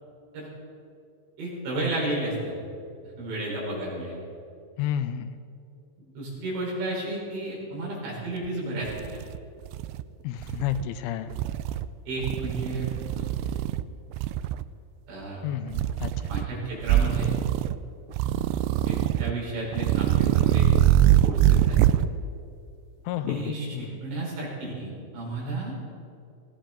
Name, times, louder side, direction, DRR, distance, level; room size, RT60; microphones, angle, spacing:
voice 1, 1.4-2.6 3.2-4.2 6.1-8.9 12.1-12.9 13.1-13.3 15.1-15.4 16.3-17.3 18.8-20.7 21.2-21.9 23.3-25.7, right 2 dB, 70° right, -4 dB, 6.7 m, -32 dB
voice 2, 4.8-5.4 10.2-11.3 15.4-16.1 23.1-24.0, left 10 dB, 85° left, 10 dB, 3.1 m, -31 dB
sound 1, 8.4-8.5 8.9-10.0 10.4-10.8 11.3-11.9 12.2-13.8 14.1-14.6 15.7-16.5 16.8-17.8 18.1-19.3 19.7-22.1, right 12 dB, 85° right, 2.5 m, -23 dB
19.0 x 17.0 x 3.9 m, 2.5 s
omnidirectional pair, 5.5 m